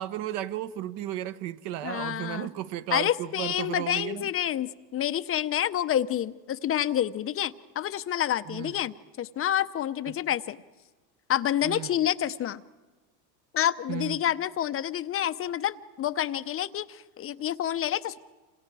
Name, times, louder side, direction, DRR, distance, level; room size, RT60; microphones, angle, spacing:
voice 1, 0.0-4.3 8.5-8.8 10.1-10.2 11.6-12.0 13.9-14.2, right 13 dB, 55° right, 13 dB, 1.2 m, -34 dB
voice 2, 1.8-2.5 2.9-10.6 11.3-12.6 13.5-18.2, left 11 dB, 30° left, 13 dB, 0.6 m, -28 dB
28.0 x 27.0 x 4.7 m, 1.2 s
supercardioid pair, 115°, 50 cm